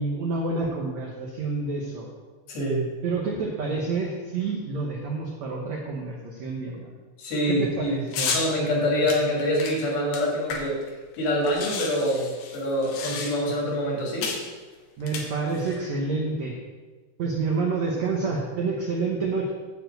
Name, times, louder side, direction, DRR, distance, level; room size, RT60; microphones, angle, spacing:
voice 1, 0.0-2.1 3.0-6.9 7.5-8.3 9.0-9.1 15.0-16.5 17.2-19.5, right 3 dB, 85° right, -1 dB, 1.5 m, -28 dB
voice 2, 2.5-2.9 7.2-8.0 8.3-10.8 11.2-14.3, equal, 75° left, -3 dB, 4.6 m, -25 dB
sound 1, 8.1-8.5 9.1-10.9 11.1-11.2 11.4-13.6 14.2-14.5 15.0-15.8, left 5 dB, 90° left, 3.5 m, -32 dB
9.7 x 4.8 x 7.8 m, 1.4 s
omnidirectional pair, 4.8 m